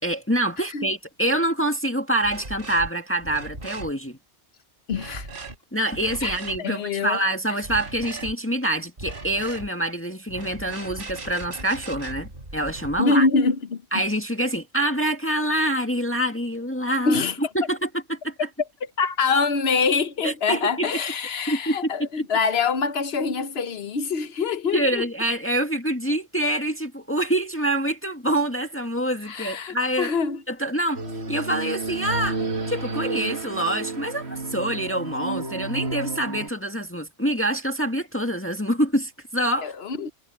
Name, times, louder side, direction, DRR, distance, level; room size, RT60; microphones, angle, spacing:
voice 1, 0.0-4.2 5.7-13.3 13.9-17.2 17.6-18.3 20.2-20.9 21.5-21.9 24.7-30.1 30.5-31.0 31.3-32.4 32.7-39.7, right 1 dB, 10° left, 1.9 m, -26 dB
sound 1, 2.2-2.9 3.2-3.9 4.9-5.6 5.9-6.6 7.6-8.3 9.0-9.7 10.3-13.0, right 2 dB, 50° right, 5.7 m, -38 dB
voice 2, 4.9-5.3 6.2-6.3 6.6-7.2 13.0-14.0 17.0-17.4 19.0-25.1 29.2-30.4 39.6-40.1, left 4 dB, 60° left, 1.2 m, -25 dB
sound 2, 30.9-36.5, right 3 dB, 65° right, 2.5 m, -31 dB
omnidirectional pair, 1.2 m